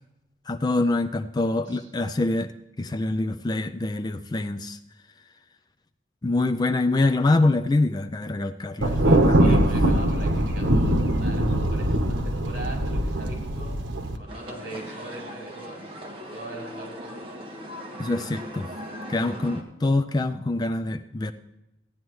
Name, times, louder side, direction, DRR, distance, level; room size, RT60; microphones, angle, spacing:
voice 1, 0.5-2.5 2.8-4.8 6.2-9.0 9.3-9.6 18.0-18.7 19.1-21.3, left 2 dB, 20° left, 9 dB, 0.4 m, -25 dB
voice 2, 1.4-1.9 8.8-13.7 14.2-15.9 16.3-17.3, right 2 dB, 55° right, -1 dB, 4.7 m, -41 dB
Thunder, 8.8-14.2, right 1 dB, 80° right, 1.1 m, -22 dB
sound 1, 14.3-19.6, equal, 30° right, 1.6 m, -39 dB
15.5 x 10.0 x 3.1 m, 0.92 s
head